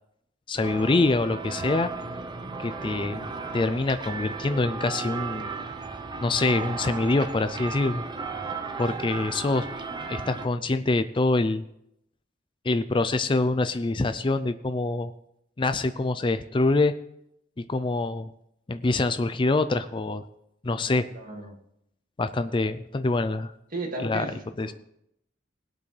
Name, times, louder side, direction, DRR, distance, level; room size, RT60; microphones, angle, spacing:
voice 1, 0.5-1.9 2.6-5.5 6.2-8.0 8.8-9.7 10.1-11.6 12.6-15.1 15.6-16.9 17.7-18.3 18.7-20.2 20.6-21.1 22.2-23.5 24.0-24.2 24.6-24.7, left 2 dB, 25° left, 11 dB, 0.4 m, -25 dB
sound 1, 0.6-10.5, right 4 dB, 25° right, 0.8 m, -35 dB
voice 2, 21.1-21.6 23.7-24.7, right 2 dB, 50° right, 1 dB, 2.2 m, -35 dB
20.5 x 8.5 x 3.3 m, 0.77 s
head